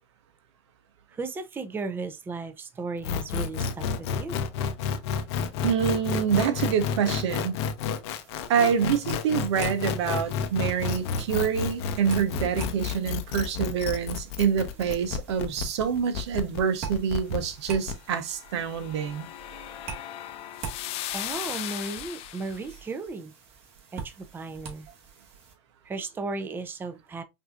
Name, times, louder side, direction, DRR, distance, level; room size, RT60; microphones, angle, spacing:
voice 1, 1.1-4.4 15.5-15.6 21.1-23.3 23.9-24.9 25.9-27.2, right 3 dB, 15° right, 0.5 m, -35 dB
sound 1, 3.0-17.9, left 6 dB, 70° left, 0.7 m, -30 dB
voice 2, 5.6-7.6 8.5-19.3, right 7 dB, 80° right, 0.9 m, -26 dB
sound 2, 8.1-25.5, right 6 dB, 45° right, 1.7 m, -45 dB
sound 3, 18.1-22.7, left 14 dB, 45° left, 0.4 m, -37 dB
5.3 x 2.7 x 2.4 m
supercardioid pair, 120°, 14 cm